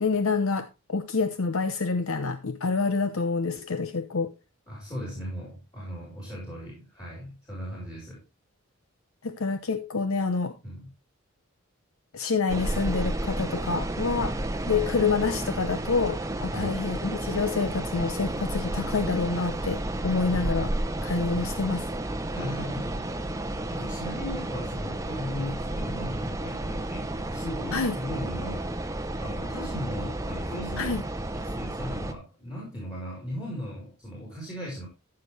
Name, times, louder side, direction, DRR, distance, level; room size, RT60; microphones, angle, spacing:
voice 1, 0.0-4.3 9.2-10.5 12.1-14.4 14.7-20.7 21.0-21.9 27.7-27.9 30.8-31.0, left 4 dB, 70° left, 0.8 m, -27 dB
voice 2, 4.7-8.2 10.6-10.9 14.3-14.4 16.5-16.8 22.3-23.2 23.7-28.7 29.2-31.0 31.3-34.9, equal, 20° left, 4.7 m, -37 dB
sound 1, 12.5-32.1, right 1 dB, 15° right, 0.8 m, -32 dB
14.0 x 6.7 x 3.3 m
head